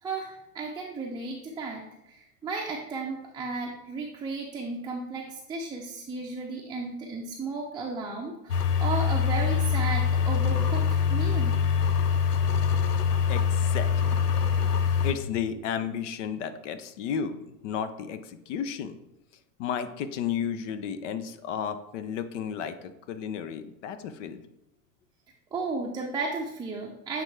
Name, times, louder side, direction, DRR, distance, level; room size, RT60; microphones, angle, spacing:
voice 1, 0.0-11.5 25.5-27.2, right 3 dB, 10° right, -1 dB, 0.6 m, -34 dB
sound 1, 8.5-15.1, left 7 dB, 85° left, 0.7 m, -24 dB
voice 2, 13.3-14.1 15.0-19.0 19.6-24.4, left 8 dB, 50° left, 11 dB, 0.7 m, -33 dB
8.9 x 3.8 x 3.3 m, 0.87 s
figure-of-eight pair, 90°, 46 cm